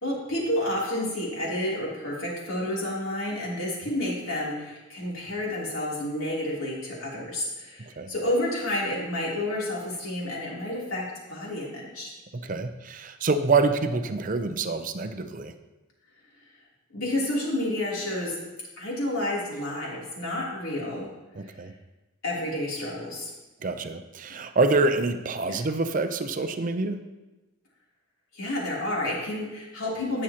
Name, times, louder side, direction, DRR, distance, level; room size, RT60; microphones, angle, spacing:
voice 1, 0.0-12.1 16.9-18.4 18.8-21.1 22.2-23.3 25.4-25.6 28.3-30.2, left 1 dB, 85° left, -4 dB, 3.2 m, -30 dB
voice 2, 7.8-8.1 12.3-15.5 21.3-21.7 23.6-27.0, right 3 dB, 40° right, 8 dB, 0.5 m, -26 dB
17.5 x 6.3 x 2.9 m, 1.1 s
head